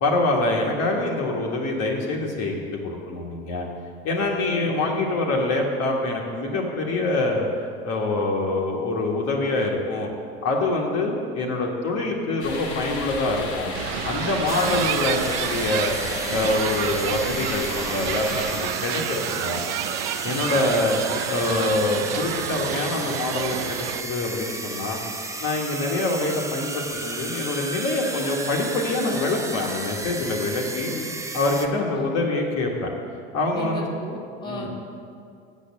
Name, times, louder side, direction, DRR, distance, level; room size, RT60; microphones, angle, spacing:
voice 1, 0.0-3.7 4.0-10.1 10.4-13.7 14.0-15.9 16.3-19.6 20.2-21.0 21.3-25.0 25.4-30.9 31.3-32.9 33.3-33.8 34.5-34.7, left 2 dB, 50° left, -1 dB, 1.5 m, -25 dB
voice 2, 4.4-4.7 30.9-31.1 31.8-32.2 33.5-34.7, equal, 15° left, -2 dB, 1.7 m, -36 dB
sound 1, 12.4-18.6, left 2 dB, 85° left, 1.9 m, -34 dB
sound 2, 13.7-24.0, right 13 dB, 65° right, 0.5 m, -30 dB
sound 3, 14.5-31.7, right 2 dB, 10° right, 0.7 m, -33 dB
7.7 x 6.4 x 7.3 m, 2.4 s
hypercardioid pair, 85°, 33 cm